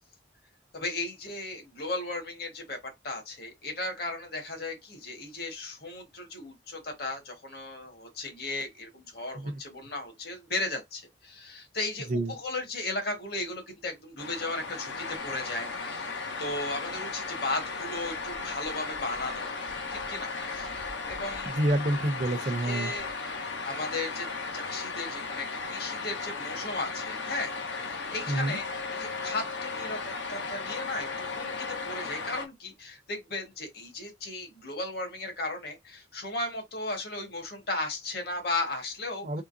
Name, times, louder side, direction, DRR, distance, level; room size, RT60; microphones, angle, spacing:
voice 1, 0.7-19.5 19.9-20.7 21.1-21.6 22.4-23.3 23.6-24.3 24.5-39.3, left 2 dB, 60° left, 1.5 m, -36 dB
sound 1, 14.2-32.5, left 4 dB, 80° left, 0.9 m, -36 dB
voice 2, 21.5-22.9 28.3-28.6 39.2-39.4, right 1 dB, 45° right, 0.6 m, -28 dB
3.8 x 3.3 x 2.6 m
head